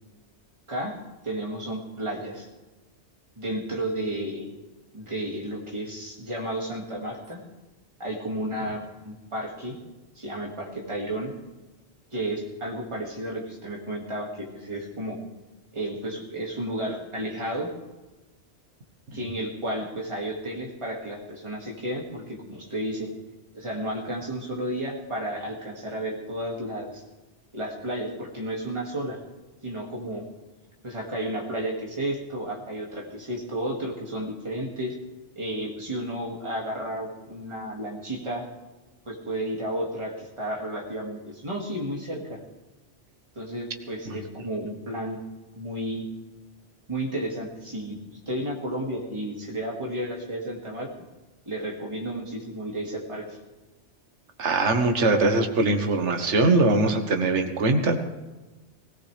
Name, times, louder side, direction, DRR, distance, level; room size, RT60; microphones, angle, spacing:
voice 1, 1.2-2.5 3.4-4.5 4.9-7.4 8.0-9.8 10.2-11.3 12.1-15.2 15.7-17.7 19.1-23.1 23.5-27.0 27.5-29.2 29.6-30.3 30.8-34.9 35.4-38.5 39.1-42.4 43.4-45.2 45.5-46.1 46.9-48.0 48.3-50.9 51.5-53.4, right 1 dB, 25° right, -2 dB, 2.2 m, -32 dB
voice 2, 54.4-58.0, right 2 dB, 75° right, 5 dB, 1.5 m, -22 dB
18.0 x 17.5 x 3.3 m, 1.2 s
omnidirectional pair, 1.2 m